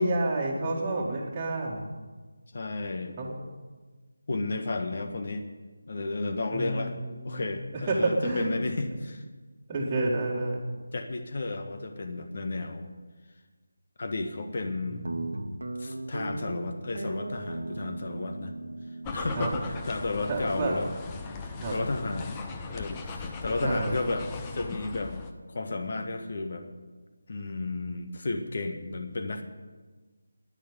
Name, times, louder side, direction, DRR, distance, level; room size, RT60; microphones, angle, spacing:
voice 1, 0.0-1.9 3.2-3.4 6.5-8.5 9.7-10.6 14.9-15.4 19.4-19.5 20.3-20.7 21.6-21.8 23.6-24.0, right 2 dB, 15° right, -7 dB, 2.0 m, -29 dB
voice 2, 2.5-3.2 4.3-5.4 5.9-7.0 7.2-9.2 10.9-12.9 14.0-15.1 15.8-18.5 19.1-20.9 21.7-22.4 22.7-25.1 25.5-26.7 27.3-29.4, left 2 dB, 45° left, 6 dB, 1.6 m, -33 dB
Guitar, 15.0-21.7, right 2 dB, 70° right, 1.2 m, -39 dB
sound 1, 19.0-25.3, left 4 dB, 15° left, 0.8 m, -38 dB
10.5 x 10.0 x 9.4 m, 1.3 s
figure-of-eight pair, 160°, 0 cm